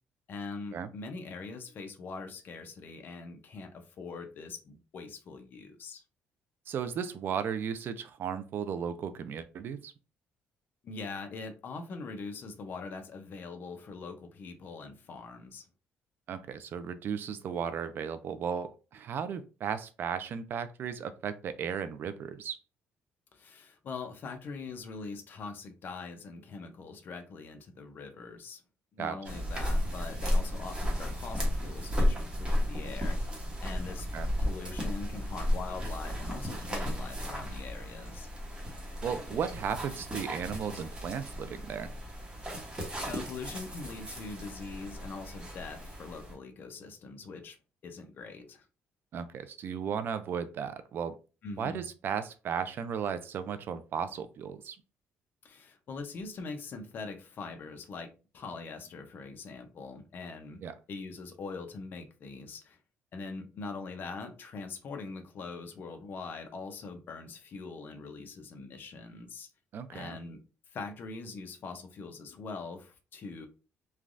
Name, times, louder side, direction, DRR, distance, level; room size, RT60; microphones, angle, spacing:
voice 1, 0.3-6.0 10.8-15.7 23.3-28.6 28.9-33.2 33.6-34.1 34.4-38.3 43.0-47.6 47.8-48.7 51.4-51.9 55.4-60.6 60.9-62.8 63.1-69.5 69.9-70.4 70.7-73.5, left 4 dB, 45° left, 0.6 m, -42 dB
voice 2, 6.7-9.9 16.3-22.6 29.0-29.2 34.1-34.3 39.0-41.9 49.1-51.2 51.6-54.8 60.6-60.7 69.7-70.2, right 7 dB, 50° right, 0.3 m, -35 dB
sound 1, 29.2-46.3, equal, 20° right, 1.0 m, -34 dB
3.2 x 2.3 x 2.5 m
cardioid pair, 140°, 5 cm